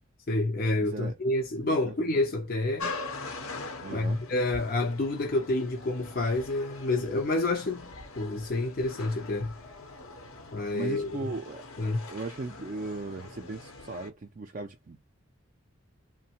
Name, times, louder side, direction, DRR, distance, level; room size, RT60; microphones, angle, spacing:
voice 1, 0.3-2.9 3.9-9.5 10.5-11.3 11.8-12.0, left 2 dB, 45° left, 0.5 m, -29 dB
voice 2, 0.8-1.2 1.6-1.9 3.8-4.2 10.7-11.6 12.1-15.0, right 3 dB, 40° right, 0.4 m, -37 dB
sound 1, 2.8-14.1, left 3 dB, 80° left, 0.9 m, -43 dB
3.2 x 2.1 x 2.8 m
head